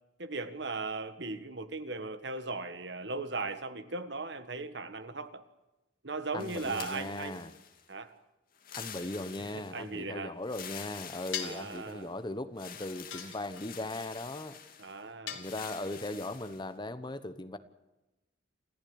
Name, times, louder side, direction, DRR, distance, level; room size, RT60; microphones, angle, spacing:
voice 1, 0.2-5.4 6.0-7.4 7.9-8.1 9.7-10.3 11.4-12.1 14.8-15.5, right 3 dB, 65° right, 11 dB, 1.6 m, -38 dB
voice 2, 6.3-7.5 8.7-14.6 15.3-17.6, left 2 dB, 25° left, 11 dB, 1.1 m, -38 dB
sound 1, 6.4-7.9 8.6-9.9 10.4-12.1 12.6-15.0 15.4-16.6, left 8 dB, 50° left, 2.6 m, -47 dB
sound 2, 11.3-11.7 13.1-13.8 15.3-16.0, left 9 dB, 85° left, 3.1 m, -39 dB
28.0 x 15.5 x 8.8 m, 0.99 s
head